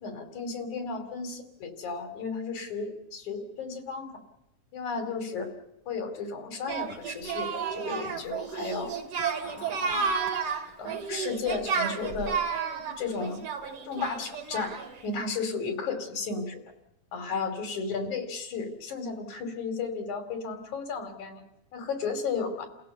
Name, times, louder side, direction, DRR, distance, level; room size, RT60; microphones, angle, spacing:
voice 1, 0.0-4.1 4.7-5.5 5.9-8.9 9.4-10.0 10.8-12.4 13.0-13.4 13.8-14.7 15.0-16.6 17.1-21.4 21.7-22.7, left 4 dB, 70° left, 6 dB, 4.2 m, -34 dB
Singing, 6.7-15.0, right 5 dB, 80° right, 3.8 m, -32 dB
29.0 x 16.0 x 6.9 m, 0.86 s
omnidirectional pair, 3.5 m